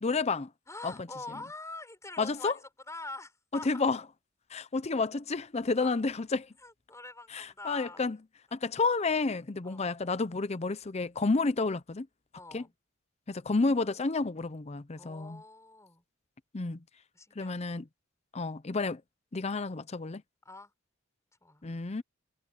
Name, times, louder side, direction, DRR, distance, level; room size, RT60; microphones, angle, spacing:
voice 1, 0.0-0.5 0.8-0.9 2.2-2.5 3.5-4.0 4.5-6.5 7.3-8.2 8.5-12.1 12.5-12.6 13.3-15.4 16.5-16.8 17.4-17.8 18.3-19.0 19.3-20.2 21.6-22.0, left 3 dB, 30° left, 0.6 m, -30 dB
voice 2, 0.7-3.8 5.8-5.9 6.6-8.0 9.6-9.8 12.4-12.7 15.0-16.0 17.1-17.8 20.5-20.7 21.4-21.7, left 2 dB, 15° left, 6.9 m, -45 dB
head